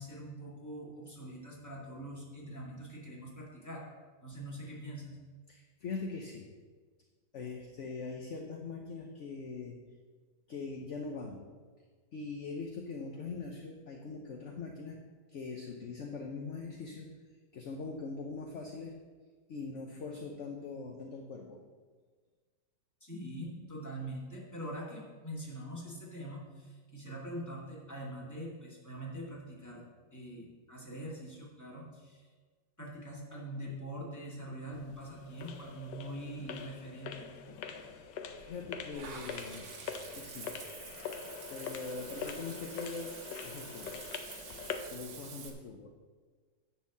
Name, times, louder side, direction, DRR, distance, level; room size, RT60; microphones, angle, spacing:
voice 1, 0.0-3.8 4.2-5.2 23.0-29.8 30.1-32.3 32.8-37.3, right 1 dB, 10° left, -4 dB, 2.2 m, -43 dB
voice 2, 5.5-6.5 7.3-9.8 10.5-11.4 12.1-15.0 15.3-17.1 17.5-18.9 19.5-21.6 37.8-38.0 38.3-39.7 40.1-40.5 41.5-43.2 43.4-44.1 44.9-46.0, left 4 dB, 50° left, 2 dB, 0.9 m, -42 dB
sound 1, 34.7-45.0, left 7 dB, 80° left, 1.4 m, -44 dB
Water / Bathtub (filling or washing), 38.9-45.5, right 5 dB, 75° right, 1.8 m, -48 dB
10.5 x 4.5 x 7.2 m, 1.5 s
omnidirectional pair, 2.0 m